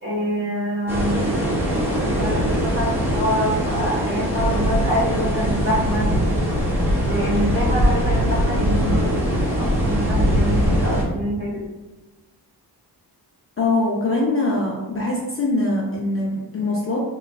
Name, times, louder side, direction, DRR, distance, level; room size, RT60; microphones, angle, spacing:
voice 1, 0.0-1.4 2.0-6.1 7.0-11.7, equal, 25° right, -6 dB, 1.5 m, -26 dB
sound 1, 0.9-11.0, equal, 5° right, 0.8 m, -21 dB
voice 2, 13.6-17.0, left 2 dB, 35° left, -3 dB, 0.5 m, -22 dB
3.3 x 3.0 x 2.4 m, 1.2 s
wide cardioid pair, 105°, 42 cm